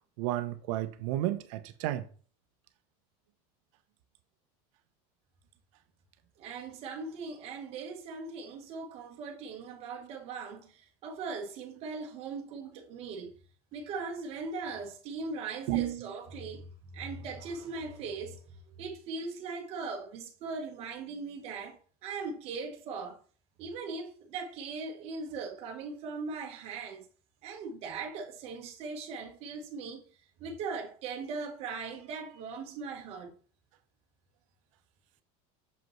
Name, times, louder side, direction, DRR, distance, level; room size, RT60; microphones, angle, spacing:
voice 1, 0.2-2.1 15.7-16.1, right 14 dB, 65° right, 0.8 m, -32 dB
voice 2, 6.4-13.3 13.7-23.2 23.6-27.1 27.4-30.0 30.4-33.3, right 4 dB, 35° right, 1.2 m, -39 dB
6.8 x 5.3 x 3.1 m
cardioid pair, 180°, 18 cm